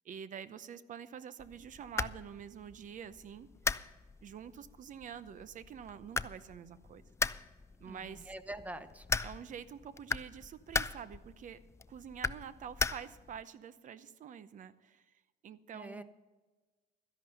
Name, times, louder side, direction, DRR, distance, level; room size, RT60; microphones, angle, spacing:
voice 1, 0.0-3.5 4.2-7.0 7.8-8.3 9.2-11.6 11.9-15.0 15.4-16.0, right 8 dB, 50° right, 15 dB, 0.8 m, -47 dB
sound 1, 1.4-13.4, left 4 dB, 15° left, 0.4 m, -39 dB
voice 2, 7.8-9.1 15.7-16.0, right 1 dB, 10° right, 11 dB, 0.9 m, -45 dB
13.5 x 11.0 x 5.5 m, 1.3 s
cardioid pair, 110°, 17 cm